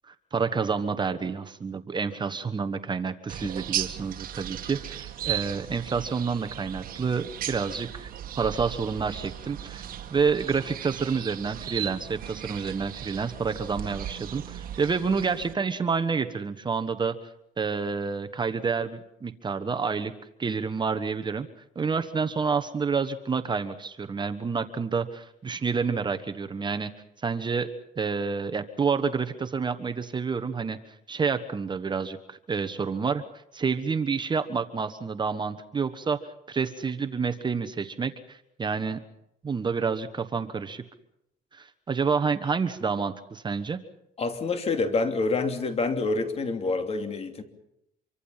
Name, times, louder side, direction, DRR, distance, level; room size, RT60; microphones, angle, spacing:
voice 1, 0.1-8.1 8.4-9.8 10.1-17.2 17.6-20.1 20.4-21.5 21.7-26.9 27.2-27.7 28.0-33.2 33.5-36.2 36.5-39.0 39.4-40.8 41.5-43.8, right 5 dB, 25° right, 9 dB, 1.2 m, -29 dB
sound 1, 3.3-15.5, right 11 dB, 60° right, 1.7 m, -37 dB
voice 2, 44.2-47.4, left 3 dB, 35° left, 7 dB, 3.0 m, -27 dB
26.0 x 24.0 x 5.7 m, 0.82 s
cardioid pair, 110°, 17 cm